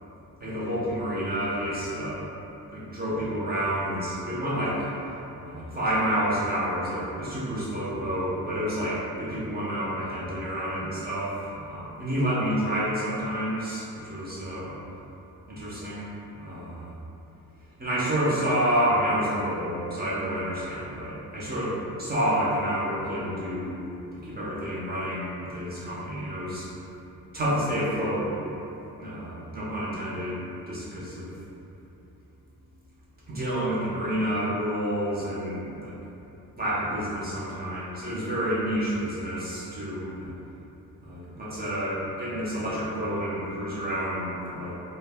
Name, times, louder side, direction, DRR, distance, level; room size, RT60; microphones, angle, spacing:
voice 1, 0.4-2.2 2.7-4.9 5.4-11.3 11.7-14.7 15.5-16.9 17.8-23.9 24.2-26.7 27.3-28.3 29.0-31.3 33.3-35.9 36.6-40.3 41.0-44.8, equal, 30° right, -8 dB, 0.6 m, -29 dB
2.1 x 2.0 x 3.3 m, 2.9 s
cardioid pair, 125°, 35 cm